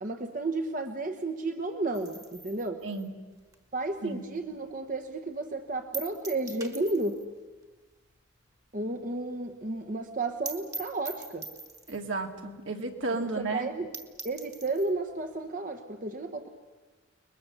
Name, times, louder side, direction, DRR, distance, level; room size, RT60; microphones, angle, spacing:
voice 1, 0.0-2.8 3.7-7.2 8.7-11.5 13.2-13.9 14.2-16.5, right 2 dB, 40° right, 6 dB, 1.1 m, -32 dB
sound 1, 1.9-4.6 4.9-5.0 5.3-5.4 5.9-7.3 7.6-7.7 8.0-8.1 8.5-8.6 8.9-9.0 9.2-9.3 9.6-9.7 10.1-10.2 10.5-12.1 12.8-12.9 13.2-13.3 13.7-13.8 13.9-14.9, right 3 dB, 15° right, 1.5 m, -43 dB
voice 2, 11.9-13.7, right 3 dB, 70° right, 3 dB, 2.5 m, -33 dB
30.0 x 21.5 x 7.1 m, 1.3 s
head